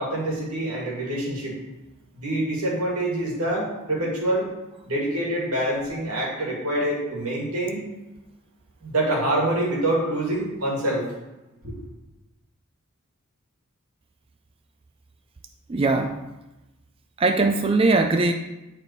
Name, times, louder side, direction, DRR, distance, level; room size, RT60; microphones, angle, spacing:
voice 1, 0.0-1.5 2.1-4.5 4.8-7.8 8.8-11.0 11.6-11.7, right 1 dB, 90° right, -3 dB, 2.2 m, -26 dB
voice 2, 15.7-16.2 17.2-18.3, right 3 dB, 25° right, 6 dB, 0.3 m, -20 dB
9.8 x 4.2 x 4.0 m, 1.0 s
head